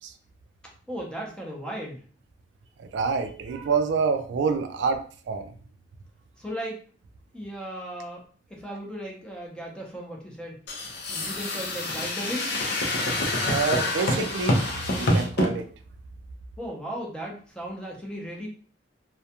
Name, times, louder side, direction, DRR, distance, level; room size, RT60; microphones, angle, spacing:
voice 1, 0.9-2.0 6.4-6.8 7.3-8.2 8.5-10.6 11.1-12.5 16.6-18.5, equal, 5° left, -1 dB, 0.6 m, -36 dB
voice 2, 2.8-5.5 13.5-15.7, right 5 dB, 70° right, 8 dB, 0.3 m, -27 dB
sound 1, 10.7-15.5, left 1 dB, 60° left, 0.6 m, -26 dB
2.3 x 2.1 x 2.8 m, 0.43 s
head